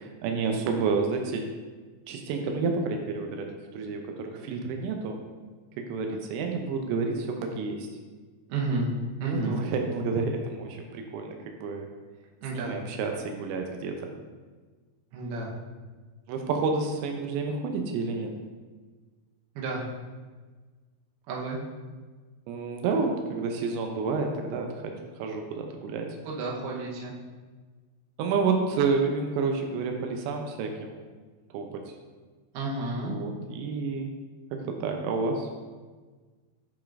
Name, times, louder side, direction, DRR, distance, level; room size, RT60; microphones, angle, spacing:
voice 1, 0.0-1.5 2.1-5.2 5.8-7.9 9.3-11.9 12.6-14.1 16.3-18.3 22.5-26.2 28.2-31.0 31.5-31.8 33.0-34.1 34.5-35.5, right 4 dB, 90° right, 3 dB, 2.9 m, -30 dB
voice 2, 8.5-8.9 9.2-9.6 12.4-12.8 15.1-15.5 19.6-19.8 21.3-21.6 26.3-27.1 32.5-33.2, right 3 dB, 70° right, -3 dB, 2.8 m, -31 dB
10.5 x 5.0 x 2.5 m, 1.4 s
omnidirectional pair, 5.0 m